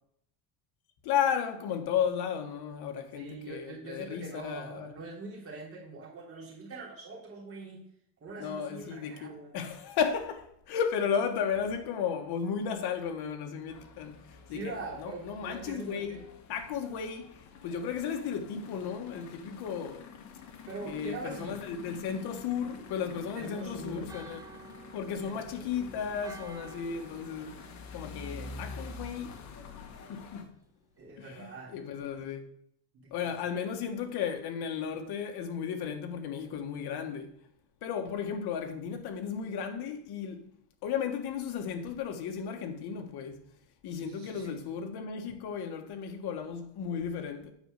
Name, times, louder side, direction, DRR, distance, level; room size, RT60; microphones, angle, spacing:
voice 1, 1.0-4.9 8.4-14.2 14.5-16.2 16.5-20.1 20.8-24.4 24.9-27.5 27.9-29.4 30.1-30.5 31.2-32.5 33.1-37.3 37.8-40.4 40.8-43.4 43.8-47.5, left 7 dB, 50° left, 1.5 m, -34 dB
voice 2, 3.1-7.8 8.2-9.6 14.5-16.2 20.7-21.6 23.4-24.1 25.2-26.1 31.0-31.7 33.2-33.5 43.9-44.6, right 3 dB, 25° right, 3.5 m, -43 dB
sound 1, 13.7-30.4, left 4 dB, 35° left, 1.2 m, -48 dB
Church bell, 23.1-28.8, right 5 dB, 5° right, 0.6 m, -53 dB
9.0 x 5.2 x 6.6 m
cardioid pair, 155°, 49 cm